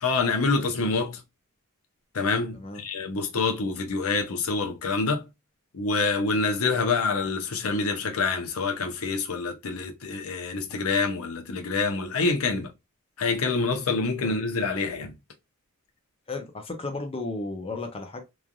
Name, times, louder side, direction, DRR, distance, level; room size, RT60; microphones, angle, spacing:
voice 1, 0.0-1.2 2.1-5.2 5.7-12.7 13.2-15.1, left 4 dB, 65° left, 0.6 m, -26 dB
voice 2, 16.3-18.2, left 3 dB, 25° left, 0.6 m, -34 dB
3.1 x 2.5 x 2.2 m
head